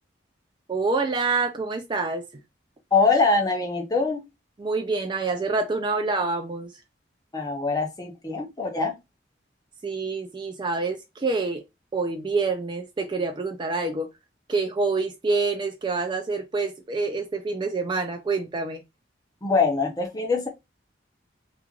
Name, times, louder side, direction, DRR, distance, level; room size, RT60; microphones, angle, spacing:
voice 1, 0.7-2.3 4.6-6.7 9.8-11.6 11.9-14.1 14.5-18.8, right 3 dB, 25° right, 0.3 m, -27 dB
voice 2, 2.9-4.2 7.3-9.0 19.4-20.5, left 4 dB, 20° left, 0.6 m, -23 dB
3.0 x 2.5 x 2.3 m
head